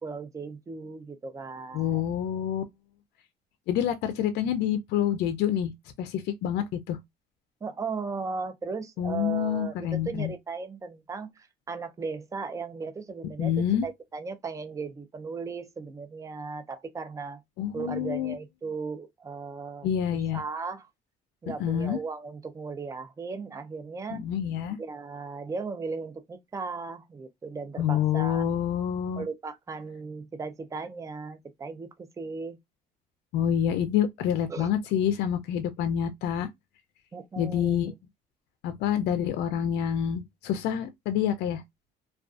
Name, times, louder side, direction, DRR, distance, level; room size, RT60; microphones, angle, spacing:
voice 1, 0.0-2.0 7.6-17.4 17.7-20.9 21.4-24.3 24.8-28.4 29.2-32.6 34.5-34.7 37.1-37.9, right 4 dB, 20° right, 0.4 m, -37 dB
voice 2, 1.7-2.6 3.7-5.7 6.0-7.0 9.0-10.3 13.4-13.8 17.6-18.3 19.8-20.4 21.6-22.0 24.1-24.8 27.8-29.2 33.3-36.5 37.4-37.9 38.6-41.6, left 9 dB, 80° left, 0.4 m, -27 dB
2.4 x 2.3 x 2.3 m
cardioid pair, 110°, 17 cm